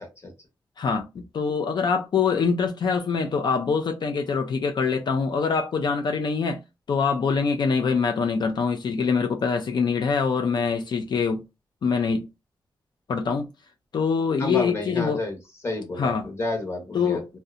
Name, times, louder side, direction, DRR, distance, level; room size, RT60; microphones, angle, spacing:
voice 1, 0.8-6.6 6.9-11.4 11.8-12.3 13.1-13.5 13.9-15.2 16.0-16.3 16.9-17.3, left 5 dB, 65° left, 0.4 m, -24 dB
voice 2, 14.4-15.4 15.6-17.2, left 2 dB, 30° left, 0.9 m, -30 dB
2.7 x 2.1 x 2.4 m
wide cardioid pair, 135°, 8 cm